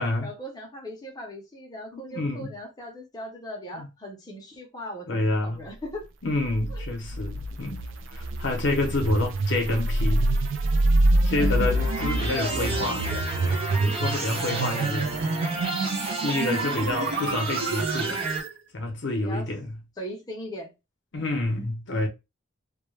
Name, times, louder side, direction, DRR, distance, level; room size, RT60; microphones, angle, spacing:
voice 1, 0.2-6.1 6.7-6.8 11.3-11.8 12.3-13.2 14.1-14.9 19.2-19.5 20.0-20.7, equal, 20° left, 0.5 m, -38 dB
voice 2, 1.9-2.5 3.7-3.9 5.1-5.6 6.2-10.3 11.2-13.0 13.8-15.2 16.1-18.3 18.7-19.7 21.1-22.1, left 2 dB, 60° left, 0.6 m, -28 dB
sound 1, 6.4-18.5, right 2 dB, 70° right, 0.4 m, -26 dB
sound 2, 11.6-18.4, right 2 dB, 30° right, 0.7 m, -32 dB
2.2 x 2.1 x 3.0 m
head